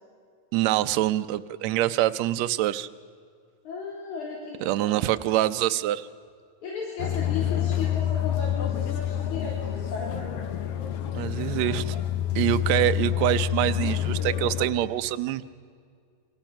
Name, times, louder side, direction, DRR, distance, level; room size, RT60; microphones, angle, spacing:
voice 1, 0.5-2.9 4.6-6.1 11.1-12.0 12.4-15.4, right 14 dB, 75° right, 11 dB, 1.9 m, -25 dB
voice 2, 3.6-5.0 6.6-10.3, left 4 dB, 85° left, -4 dB, 4.8 m, -35 dB
sound 1, 7.0-14.7, left 11 dB, 60° left, 2.0 m, -28 dB
28.0 x 25.0 x 5.9 m, 2.2 s
omnidirectional pair, 3.3 m